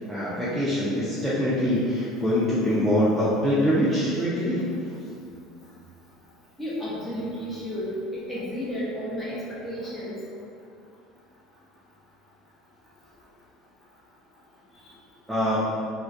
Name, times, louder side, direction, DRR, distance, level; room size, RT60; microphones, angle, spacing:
voice 1, 0.1-4.6 15.3-15.7, equal, 5° right, -9 dB, 0.5 m, -24 dB
voice 2, 6.6-10.1, equal, 10° left, -8 dB, 0.9 m, -32 dB
2.2 x 2.2 x 2.5 m, 2.3 s
supercardioid pair, 90°, 0 cm